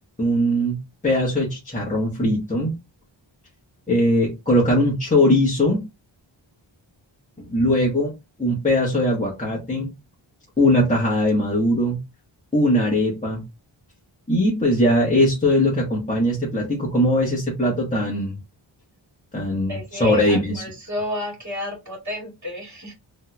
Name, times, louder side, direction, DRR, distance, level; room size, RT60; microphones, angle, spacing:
voice 1, 0.2-0.8 1.0-2.7 3.9-5.8 7.4-8.1 8.4-9.9 10.6-12.0 12.5-13.4 14.3-18.4 19.3-20.6, left 1 dB, 15° left, -4 dB, 1.3 m, -20 dB
voice 2, 19.7-22.9, left 1 dB, 35° right, 0 dB, 2.2 m, -31 dB
3.6 x 3.0 x 2.3 m, 0.23 s
wide cardioid pair, 70°, 47 cm